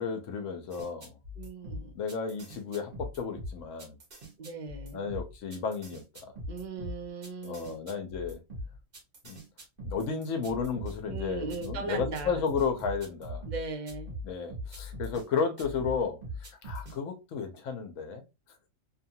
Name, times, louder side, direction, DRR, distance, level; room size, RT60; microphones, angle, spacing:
voice 1, 0.0-1.2 1.9-4.0 4.9-6.3 7.4-8.4 9.2-9.4 9.8-13.4 14.2-18.2, left 5 dB, 70° left, 1.0 m, -33 dB
sound 1, 0.7-15.3 15.6-17.0, left 1 dB, 45° right, 1.1 m, -41 dB
voice 2, 1.4-2.0 4.4-5.1 6.5-7.9 11.1-12.4 13.5-14.2, right 4 dB, 75° right, 0.4 m, -38 dB
2.7 x 2.4 x 2.7 m
omnidirectional pair, 1.4 m